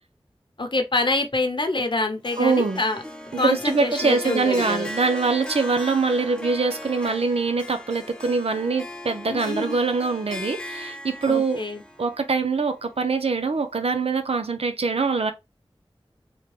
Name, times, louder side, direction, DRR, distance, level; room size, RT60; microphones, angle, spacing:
voice 1, 0.6-3.0 3.4-4.9 9.3-9.8 11.2-11.8, left 2 dB, 55° left, 0.9 m, -26 dB
Harp, 2.2-13.5, left 1 dB, 10° left, 0.7 m, -38 dB
voice 2, 2.4-2.8 3.3-11.6 12.0-15.3, right 4 dB, 85° right, 0.6 m, -23 dB
3.6 x 2.2 x 3.1 m
wide cardioid pair, 55°, 10 cm